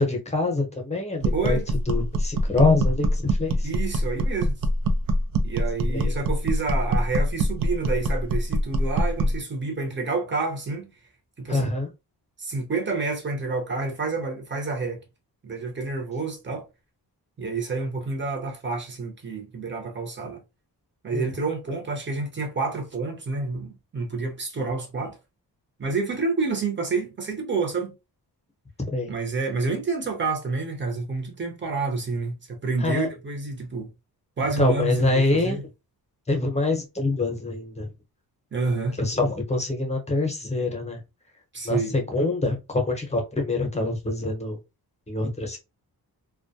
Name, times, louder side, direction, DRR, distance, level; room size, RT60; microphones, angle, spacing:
voice 1, 0.0-1.6 1.9-3.7 5.9-6.1 11.5-11.9 21.1-21.3 28.9-29.1 32.8-33.1 34.6-35.6 36.3-37.9 39.0-41.0 41.6-44.6 45.1-45.6, left 2 dB, 15° left, 0.8 m, -25 dB
sound 1, 1.2-9.4, equal, 65° right, 0.5 m, -24 dB
voice 2, 1.3-1.6 3.6-4.5 5.4-10.9 11.4-11.7 12.4-15.0 15.4-16.7 17.4-20.4 21.0-25.2 25.8-27.9 29.1-33.9 34.4-35.6 38.5-39.0 41.5-41.9, right 3 dB, 30° right, 0.8 m, -29 dB
2.2 x 2.1 x 2.6 m
cardioid pair, 100°, 39 cm